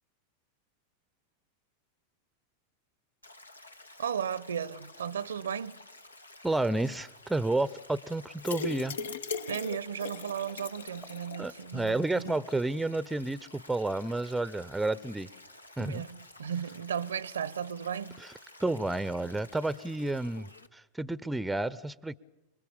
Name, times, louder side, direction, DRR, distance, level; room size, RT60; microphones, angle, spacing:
Stream, 3.2-20.7, left 2 dB, 80° left, 1.2 m, -53 dB
voice 1, 4.0-5.8 9.5-12.4 15.8-18.2 19.2-19.3, right 8 dB, 70° right, 0.9 m, -35 dB
voice 2, 6.4-9.0 11.4-15.3 15.8-16.0 18.2-18.3 18.6-22.2, right 2 dB, 5° right, 0.7 m, -31 dB
sound 1, 8.4-11.5 11.9-12.0 12.3-12.4, left 5 dB, 65° left, 1.0 m, -38 dB
29.0 x 21.0 x 7.1 m
figure-of-eight pair, 90°, 0 cm